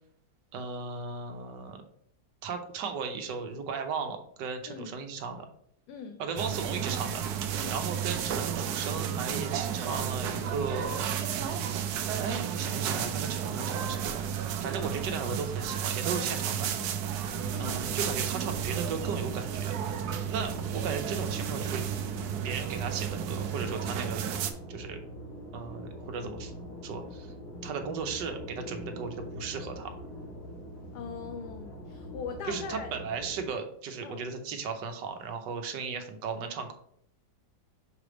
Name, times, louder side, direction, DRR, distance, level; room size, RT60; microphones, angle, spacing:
voice 1, 0.5-1.8 2.4-5.5 6.2-7.2 7.7-11.2 11.6-11.9 12.2-14.2 14.6-16.7 17.6-19.8 20.3-21.8 22.4-24.2 24.7-25.0 25.5-26.5 26.8-27.3 27.6-29.9 32.5-36.7, right 5 dB, 90° right, 6 dB, 1.4 m, -36 dB
voice 2, 5.9-6.2 7.5-7.9 17.5-17.8 30.9-32.9 34.0-34.2, left 6 dB, 75° left, 6 dB, 1.1 m, -41 dB
sound 1, 6.4-24.5, right 8 dB, 70° right, 1.1 m, -32 dB
sound 2, 17.2-33.5, equal, 55° left, 2.4 m, -44 dB
5.9 x 3.3 x 4.9 m, 0.68 s
omnidirectional pair, 1.8 m